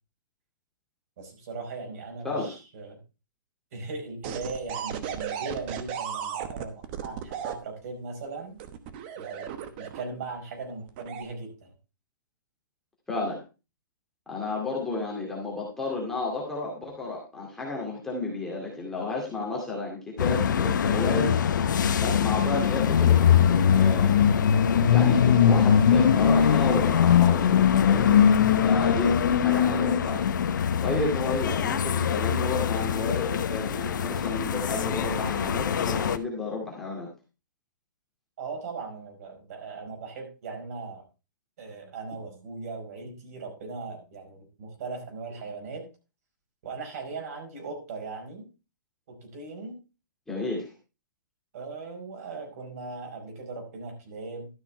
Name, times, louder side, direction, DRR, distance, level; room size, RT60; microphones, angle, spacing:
voice 1, 1.2-3.0 3.7-8.6 9.2-11.7 38.4-41.0 41.6-45.8 46.6-48.4 49.1-49.8 51.5-54.5, right 4 dB, 50° right, 2 dB, 4.9 m, -38 dB
sound 1, 4.2-7.6 8.6-10.2 10.9-11.2, right 9 dB, 30° right, 1.1 m, -35 dB
voice 2, 13.1-13.4 14.3-21.3 22.0-24.1 24.9-28.2 28.6-30.3 30.8-37.1 50.3-50.7, left 3 dB, 5° left, -3 dB, 2.3 m, -32 dB
sound 2, 20.2-36.2, left 8 dB, 65° left, 1.0 m, -22 dB
13.0 x 6.0 x 4.5 m, 0.31 s
hypercardioid pair, 155°, 11 cm